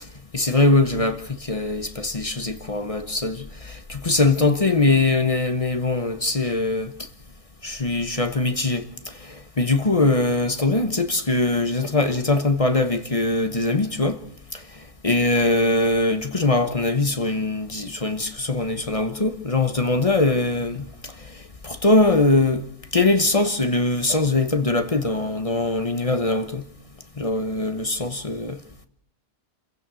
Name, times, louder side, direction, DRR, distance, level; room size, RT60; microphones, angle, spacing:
voice 1, 0.3-6.9 7.6-14.2 14.5-14.6 15.0-22.6 22.9-26.7 27.2-28.6, left 2 dB, 25° left, 1.0 m, -22 dB
27.5 x 16.5 x 6.2 m
omnidirectional pair, 1.5 m